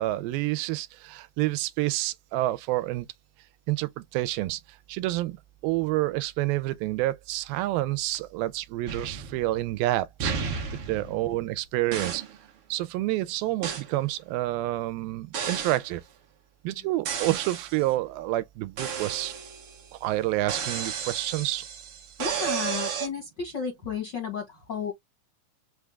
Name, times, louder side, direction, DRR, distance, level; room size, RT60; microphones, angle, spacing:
voice 1, 0.0-3.1 3.7-4.6 4.9-5.4 5.6-10.5 10.9-12.2 12.7-16.0 16.6-19.3 19.9-21.6, right 17 dB, 90° right, 2.4 m, -28 dB
sound 1, 8.8-9.8 10.2-11.5 11.9-12.4 13.6-13.9 15.3-15.9 17.0-17.8 18.8-19.9 20.5-23.1, right 7 dB, 70° right, 1.3 m, -33 dB
voice 2, 22.2-24.9, left 6 dB, 75° left, 1.0 m, -33 dB
5.6 x 2.4 x 3.3 m
omnidirectional pair, 4.0 m